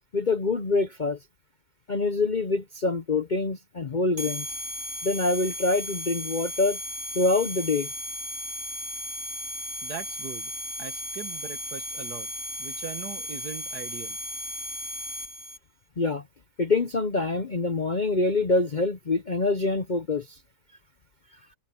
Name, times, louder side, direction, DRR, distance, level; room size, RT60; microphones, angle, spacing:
voice 1, 0.1-1.2 1.9-4.5 5.0-6.8 7.1-7.9 16.0-16.2 16.6-20.4, left 3 dB, 40° left, 0.7 m, -25 dB
sound 1, 4.2-15.6, left 1 dB, 45° right, 3.2 m, -35 dB
voice 2, 9.8-10.5 10.8-12.3 12.6-14.2, right 7 dB, 70° right, 2.0 m, -40 dB
omnidirectional pair, 1.8 m